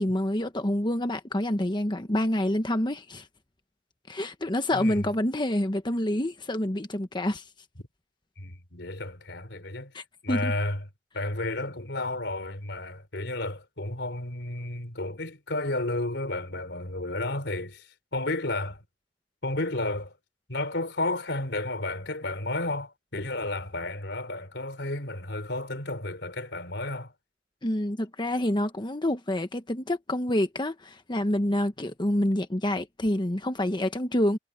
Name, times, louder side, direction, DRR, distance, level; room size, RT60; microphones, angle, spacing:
voice 1, 0.0-3.3 4.1-7.4 9.9-10.5 27.6-34.4, left 1 dB, 25° left, 1.2 m, -27 dB
voice 2, 4.7-5.1 8.4-9.9 10.2-10.8 11.1-18.8 19.4-20.2 20.5-27.1, left 2 dB, 85° left, 3.7 m, -32 dB
head